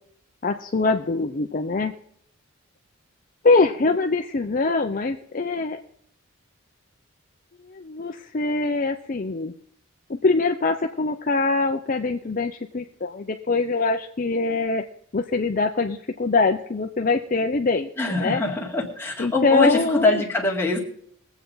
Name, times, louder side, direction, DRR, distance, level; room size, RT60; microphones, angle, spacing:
voice 1, 0.4-1.9 3.4-5.8 7.7-9.5 10.2-14.8 15.1-17.9 18.2-18.4 19.2-20.2, left 3 dB, 40° left, 5 dB, 0.5 m, -23 dB
voice 2, 18.0-20.8, left 2 dB, 10° left, -2 dB, 1.9 m, -23 dB
21.5 x 8.0 x 3.9 m, 0.67 s
head